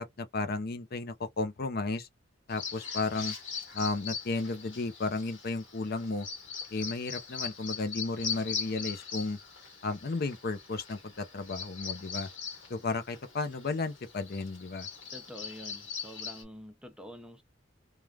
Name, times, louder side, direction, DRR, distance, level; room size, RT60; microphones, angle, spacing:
voice 1, 0.0-2.1 2.5-3.3 3.7-6.3 6.7-9.4 9.8-12.3 12.7-14.9, left 3 dB, 55° left, 0.6 m, -33 dB
Bird vocalization bird call bird song, 2.5-16.4, left 6 dB, 90° left, 1.2 m, -41 dB
voice 2, 15.1-17.4, equal, 5° right, 0.4 m, -47 dB
3.2 x 2.3 x 2.3 m
head